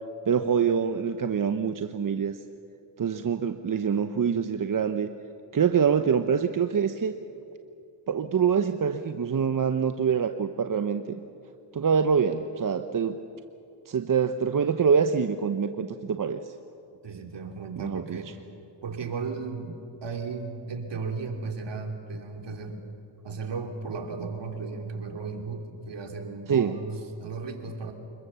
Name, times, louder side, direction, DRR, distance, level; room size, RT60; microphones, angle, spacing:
voice 1, 0.3-2.4 3.0-5.1 5.5-7.1 8.1-11.0 11.7-13.2 13.9-16.5 17.8-18.2 26.5-26.8, right 7 dB, 40° right, 8 dB, 0.9 m, -25 dB
voice 2, 17.0-18.3 18.8-22.8 23.2-27.9, right 4 dB, 60° right, 3 dB, 3.1 m, -35 dB
25.5 x 22.0 x 7.0 m, 2.6 s
cardioid pair, 70°, 48 cm